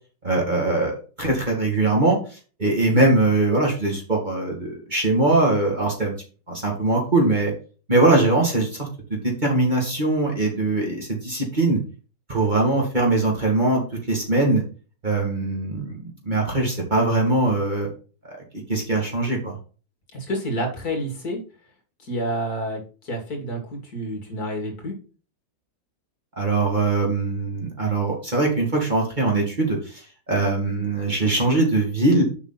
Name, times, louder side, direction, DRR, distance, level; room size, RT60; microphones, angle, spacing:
voice 1, 0.2-2.2 2.6-6.1 6.5-7.5 7.9-8.9 9.2-11.8 12.3-13.8 14.1-14.6 15.0-17.9 18.3-18.4 18.7-19.6 26.4-30.0 30.3-32.2, right 2 dB, 25° right, -1 dB, 2.4 m, -21 dB
voice 2, 20.1-21.4 22.0-25.0, equal, 50° left, 2 dB, 2.7 m, -29 dB
7.1 x 5.6 x 4.1 m, 0.36 s
omnidirectional pair, 2.0 m